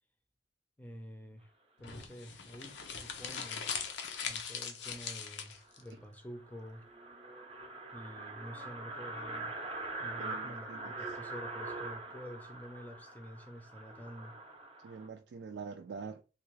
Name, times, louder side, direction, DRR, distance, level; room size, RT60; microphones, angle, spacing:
voice 1, 0.8-1.5 1.8-3.7 4.2-6.9 7.9-9.5 10.0-14.4, equal, 10° left, 0.6 m, -48 dB
sound 1, 1.8-5.8, left 6 dB, 75° left, 0.7 m, -40 dB
sound 2, 5.1-5.2 5.6-5.7 6.0-6.1 6.3-15.1, right 2 dB, 35° right, 0.6 m, -43 dB
voice 2, 10.2-11.2 14.8-16.2, right 5 dB, 65° right, 0.3 m, -45 dB
3.4 x 2.3 x 3.1 m
head